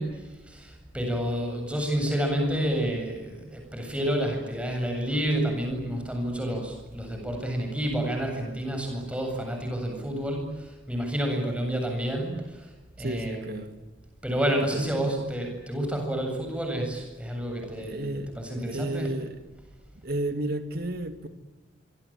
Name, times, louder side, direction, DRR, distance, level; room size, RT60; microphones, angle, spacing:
voice 1, 0.0-12.7 13.0-13.6 14.2-19.1, right 1 dB, 5° right, 3 dB, 8.0 m, -29 dB
voice 2, 13.0-13.8 14.7-15.2 17.8-18.3 18.6-19.4 20.0-21.3, right 1 dB, 50° right, 8 dB, 2.8 m, -32 dB
26.0 x 25.0 x 9.0 m, 1.2 s
head